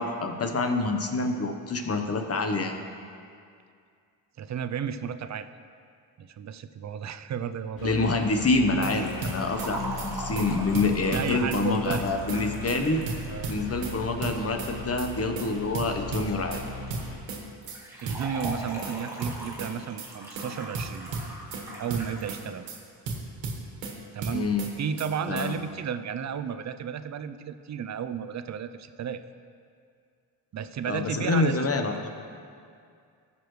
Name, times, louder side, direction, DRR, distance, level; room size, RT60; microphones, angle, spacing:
voice 1, 0.0-2.8 7.8-13.0 13.5-16.6 24.3-24.7 25.3-25.5 30.9-31.9, left 3 dB, 35° left, 5 dB, 1.0 m, -27 dB
voice 2, 4.4-5.5 6.2-8.1 11.1-12.1 13.3-13.5 18.0-21.1 21.8-22.7 24.1-24.5 24.8-29.2 30.5-31.7, right 8 dB, 40° right, 12 dB, 0.5 m, -33 dB
sound 1, 7.8-17.2, left 3 dB, 60° left, 2.0 m, -39 dB
sound 2, 8.6-8.9 9.2-9.7 10.0-10.1 10.4-10.5 10.7-11.6 11.9-12.4 12.7-12.8 13.1-13.9 14.2-14.7 15.0-15.1 15.4-15.5 15.7-16.6 16.9-17.4 17.7-17.8 18.1-18.9 19.2-19.7 20.0-20.1 20.4-20.5 20.7-21.6 21.9-22.4 22.7-22.8 23.1-23.9 24.2-24.7 25.0-25.1 25.4-25.5, right 4 dB, 90° right, 1.6 m, -34 dB
Liquid, 8.9-13.9 17.6-22.4 22.7-22.8 23.7-23.8, right 1 dB, 5° right, 2.1 m, -40 dB
16.0 x 6.9 x 3.1 m, 2.3 s
cardioid pair, 85°, 42 cm